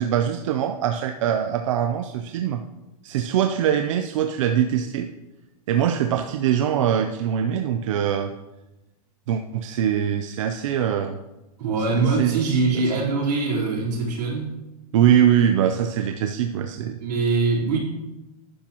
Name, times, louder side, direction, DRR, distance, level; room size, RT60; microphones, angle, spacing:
voice 1, 0.0-2.6 3.0-5.1 5.7-8.3 9.3-11.2 11.9-12.8 14.9-17.0, right 9 dB, 55° right, 6 dB, 0.6 m, -22 dB
voice 2, 11.6-14.6 17.0-17.8, right 3 dB, 85° right, -3 dB, 4.0 m, -23 dB
12.0 x 10.0 x 3.0 m, 0.99 s
supercardioid pair, 175°, 20 cm